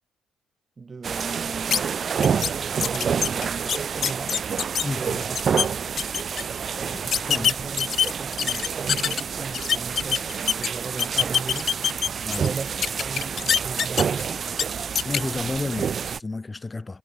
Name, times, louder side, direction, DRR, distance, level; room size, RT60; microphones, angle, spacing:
voice 1, 0.8-1.9 2.8-4.4 5.0-5.5 6.8-10.3 10.6-11.7 12.2-14.5, right 4 dB, 35° right, 3.0 m, -37 dB
sound 1, 1.0-16.2, right 7 dB, 50° right, 3.2 m, -28 dB
sound 2, 1.7-1.8 2.2-2.5 2.8-4.8 5.2-5.7 6.0-6.4 7.1-9.2 9.5-10.7 11.0-12.5 12.8-14.2 14.5-14.6 15.0-15.2, left 8 dB, 55° left, 0.7 m, -24 dB
voice 2, 4.8-5.2 6.9-7.5 12.2-12.5 15.0-17.0, left 3 dB, 20° left, 2.9 m, -31 dB
cardioid pair, 90°, 0 cm